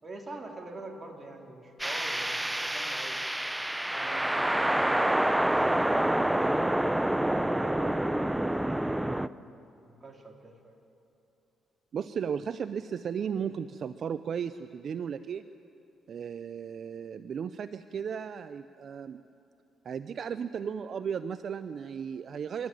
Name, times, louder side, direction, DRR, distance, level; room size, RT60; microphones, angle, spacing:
voice 1, 0.0-3.2 3.9-6.7 7.3-9.5 9.8-10.8, right 2 dB, 25° right, 1 dB, 3.2 m, -45 dB
sound 1, 1.8-9.3, right 1 dB, 5° right, 0.5 m, -27 dB
voice 2, 11.9-15.5 16.1-19.2 19.8-22.7, right 7 dB, 55° right, 12 dB, 0.5 m, -35 dB
25.5 x 13.5 x 9.2 m, 2.8 s
cardioid pair, 90°, 0 cm